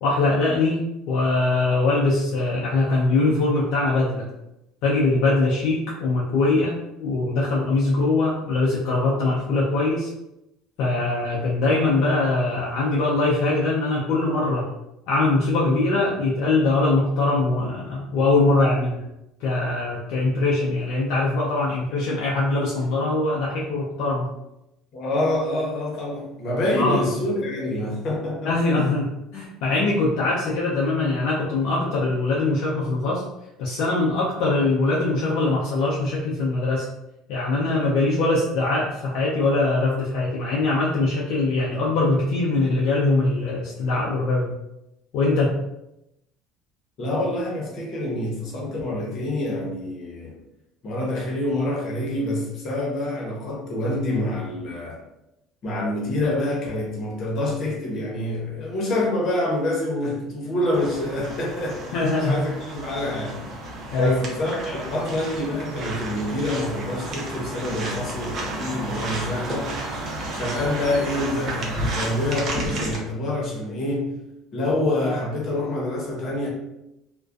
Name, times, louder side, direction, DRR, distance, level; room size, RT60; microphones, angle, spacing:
voice 1, 0.0-4.3 4.8-6.7 7.0-10.1 10.8-14.7 15.1-19.1 19.4-24.3 26.7-27.1 28.4-29.0 29.3-33.2 33.6-36.9 37.3-44.5 45.1-45.6 61.9-62.4 63.9-64.2, left 2 dB, 70° left, -5 dB, 0.5 m, -22 dB
voice 2, 24.9-28.9 47.0-50.4 50.8-55.0 55.6-63.4 64.0-69.7 70.3-74.1 74.5-76.5, left 1 dB, 50° left, -3 dB, 0.9 m, -26 dB
sound 1, 60.7-73.0, right 1 dB, 50° right, 0.6 m, -32 dB
2.4 x 2.2 x 2.3 m, 0.89 s
supercardioid pair, 100°, 0 cm